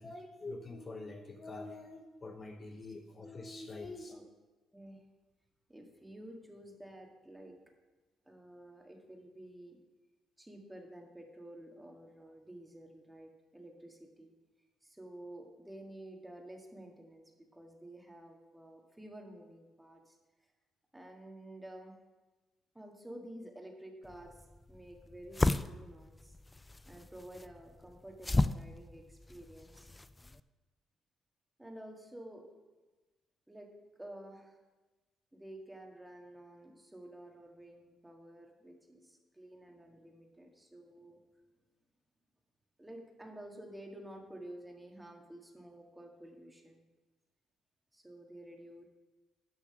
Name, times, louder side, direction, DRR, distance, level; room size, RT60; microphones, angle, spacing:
voice 1, 0.0-4.1, left 2 dB, 30° left, 4 dB, 0.9 m, -45 dB
voice 2, 5.7-7.6 8.3-9.8 10.4-14.3 14.8-17.2 17.5-20.2 20.9-22.0 22.8-24.3 24.7-26.3 26.9-29.9 31.6-32.5 33.5-33.7 34.0-34.6 35.3-41.2 42.8-46.8 47.9-48.8, right 1 dB, 10° right, 2 dB, 1.7 m, -51 dB
sound 1, 24.1-30.4, left 2 dB, 15° left, 0.3 m, -35 dB
10.5 x 5.9 x 5.8 m, 1.2 s
cardioid pair, 100°, 0 cm